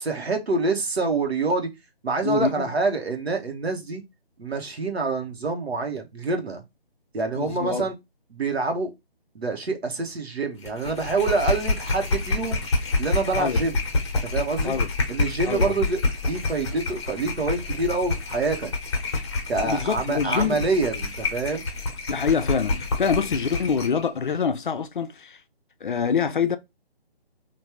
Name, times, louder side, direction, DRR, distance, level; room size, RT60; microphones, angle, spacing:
voice 1, 0.0-1.7 2.0-4.0 4.4-6.6 7.1-7.9 8.3-8.9 9.3-12.6 13.0-13.7 14.2-14.7 15.1-18.7 19.5-21.6, right 3 dB, 85° right, 1.2 m, -26 dB
voice 2, 2.2-2.7 7.4-7.9 13.4-13.6 14.6-14.9 15.5-15.8 19.6-20.6 22.1-25.4 25.8-26.6, left 6 dB, 55° left, 0.4 m, -25 dB
sound 1, 10.6-24.0, left 3 dB, 25° left, 0.9 m, -28 dB
3.4 x 2.6 x 2.9 m
hypercardioid pair, 160°, 31 cm